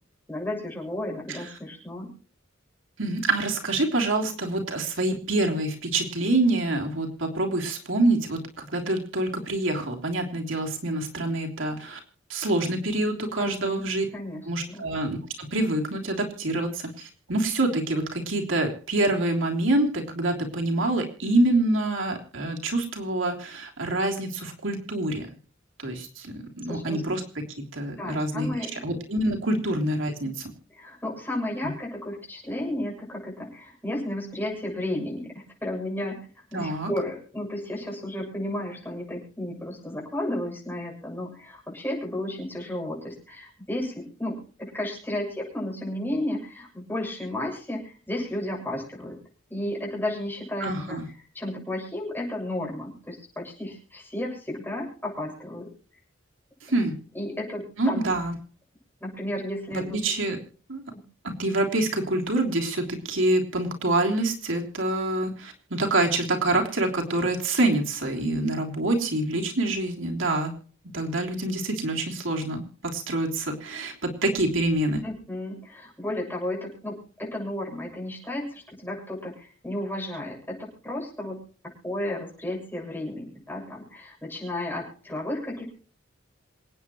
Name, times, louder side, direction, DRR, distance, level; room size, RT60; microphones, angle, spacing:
voice 1, 0.3-2.1 13.4-13.8 14.1-14.8 26.7-27.0 28.0-28.7 30.2-30.3 30.7-36.2 36.5-49.2 49.5-51.0 51.3-55.7 57.1-58.1 59.0-60.0 60.9-61.0 75.0-81.4 81.8-85.7, left 1 dB, 10° left, -2 dB, 7.5 m, -33 dB
voice 2, 3.0-12.0 12.3-14.0 14.5-25.3 25.8-27.2 27.7-30.3 36.5-36.9 50.6-51.0 56.6-56.9 57.8-58.3 59.9-60.4 60.7-60.8 61.2-70.5 70.9-75.0, right 2 dB, 90° right, 1 dB, 3.3 m, -26 dB
27.0 x 9.4 x 3.1 m, 0.43 s
head